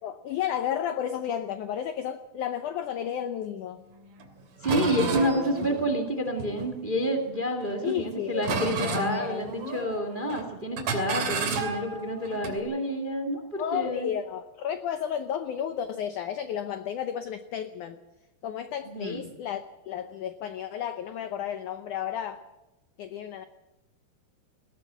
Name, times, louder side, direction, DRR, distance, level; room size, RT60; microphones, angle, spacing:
voice 1, 0.0-3.8 7.8-8.5 8.8-9.4 13.6-18.0 18.4-22.4 23.0-23.4, left 9 dB, 85° left, 10 dB, 1.7 m, -32 dB
sound 1, 4.2-4.3 4.6-7.1 7.6-8.1 8.4-10.0 10.3-10.5 10.8-12.6, right 3 dB, 60° right, 4.2 m, -32 dB
voice 2, 4.6-14.1 18.8-19.2, equal, 20° right, 6 dB, 1.3 m, -29 dB
21.0 x 16.0 x 8.1 m, 1.0 s
omnidirectional pair, 4.7 m